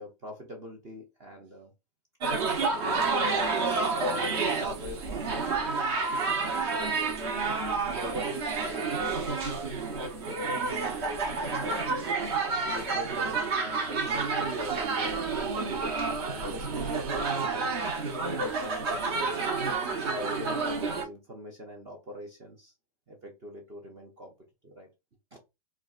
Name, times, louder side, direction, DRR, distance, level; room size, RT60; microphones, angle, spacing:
voice 1, 0.0-1.7 2.3-6.0 6.2-7.2 7.8-9.2 10.2-12.1 12.6-15.3 15.9-19.3 20.0-22.7 23.1-24.3 24.6-24.9 25.3-25.4, equal, 15° right, 0.4 m, -44 dB
sound 1, 2.2-21.0, right 4 dB, 45° right, 0.9 m, -29 dB
sound 2, 14.3-18.1, right 10 dB, 90° right, 0.6 m, -41 dB
3.9 x 2.3 x 2.3 m
supercardioid pair, 175°, 19 cm